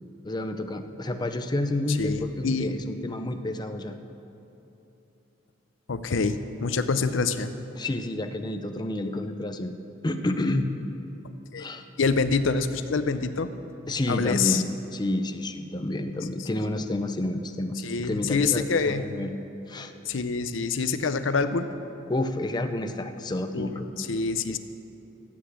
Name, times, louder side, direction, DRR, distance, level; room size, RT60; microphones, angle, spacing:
voice 1, 0.2-3.9 7.7-9.7 10.0-10.7 11.6-11.8 13.9-19.3 19.7-19.9 22.1-23.9 24.5-24.6, left 1 dB, 20° left, 7 dB, 0.6 m, -29 dB
voice 2, 1.9-2.8 5.9-7.5 11.5-11.7 12.0-13.5 14.1-14.6 17.8-19.1 20.1-21.7 23.5-24.6, left 4 dB, 85° left, 10 dB, 0.6 m, -26 dB
13.0 x 8.2 x 8.1 m, 3.0 s
head